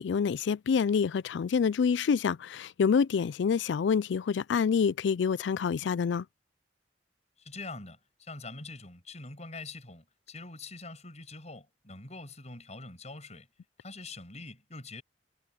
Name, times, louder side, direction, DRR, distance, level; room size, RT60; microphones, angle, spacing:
voice 1, 0.0-6.3, left 6 dB, 90° left, 0.4 m, -27 dB
voice 2, 7.4-13.5 13.8-15.0, left 3 dB, 40° left, 6.6 m, -44 dB
head